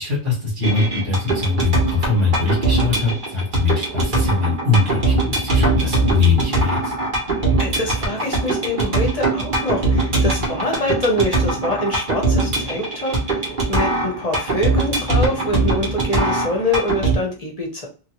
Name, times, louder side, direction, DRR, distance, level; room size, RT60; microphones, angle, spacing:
voice 1, 0.0-6.9, left 4 dB, 80° right, -6 dB, 1.8 m, -21 dB
sound 1, 0.6-17.1, right 2 dB, 45° right, 1.2 m, -21 dB
voice 2, 7.6-17.9, left 1 dB, 35° left, 0 dB, 0.8 m, -25 dB
3.0 x 2.6 x 2.9 m, 0.36 s
omnidirectional pair, 1.2 m